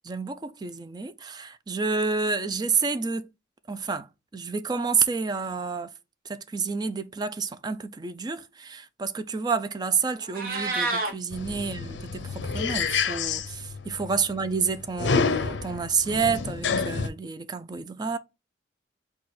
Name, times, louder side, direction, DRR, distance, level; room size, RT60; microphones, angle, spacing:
voice 1, 0.1-3.3 3.7-4.1 4.3-5.9 6.3-12.2 12.5-18.2, right 5 dB, 20° right, 0.3 m, -29 dB
Meow, 10.1-11.1, right 3 dB, 50° right, 1.0 m, -28 dB
sound 1, 11.3-17.1, left 5 dB, 75° left, 0.5 m, -29 dB
4.2 x 2.3 x 4.6 m
head